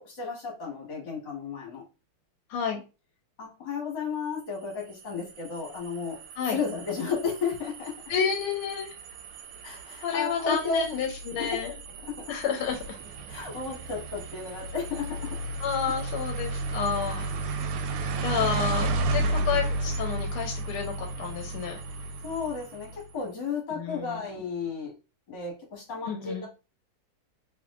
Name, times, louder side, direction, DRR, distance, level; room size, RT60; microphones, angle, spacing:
voice 1, 0.0-1.8 3.4-6.2 6.5-8.0 9.6-10.8 11.4-11.6 12.0-12.4 13.3-15.4 18.1-18.2 19.0-19.6 22.2-24.9 25.3-26.5, left 5 dB, 55° left, -1 dB, 2.1 m, -33 dB
voice 2, 2.5-2.8 6.4-6.6 8.1-8.9 10.0-11.7 12.3-13.0 15.6-17.3 18.2-21.8 23.7-24.2 26.1-26.5, left 7 dB, 85° left, 2 dB, 1.5 m, -30 dB
sound 1, 4.6-23.1, right 2 dB, 85° right, 1.5 m, -33 dB
3.5 x 3.4 x 2.4 m, 0.30 s
omnidirectional pair, 2.4 m